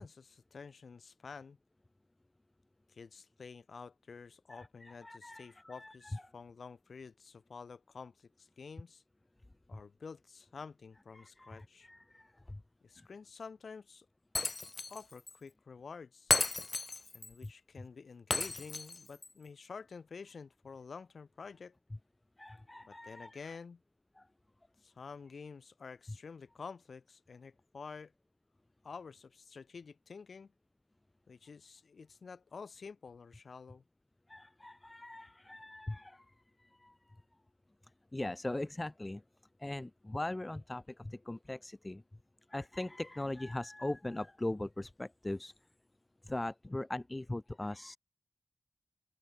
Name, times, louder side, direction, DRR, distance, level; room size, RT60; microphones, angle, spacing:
voice 1, 0.0-1.6 2.9-9.0 9.7-11.9 12.8-14.1 14.9-16.3 17.1-21.8 22.9-23.8 24.8-28.1 28.8-30.5 31.3-33.8, left 5 dB, 70° left, 5.8 m, -49 dB
voice 2, 4.5-6.2 9.7-9.8 11.1-12.6 13.0-13.1 22.4-23.5 24.2-24.3 34.3-36.3 36.6-36.9 38.1-39.2 39.6-42.0 42.5-45.5 46.2-48.0, left 1 dB, 25° left, 1.0 m, -40 dB
Shatter, 14.4-15.0 15.3-15.4 16.3-17.3 18.3-19.3, left 3 dB, 45° left, 0.6 m, -33 dB
open air
cardioid pair, 45°, 0 cm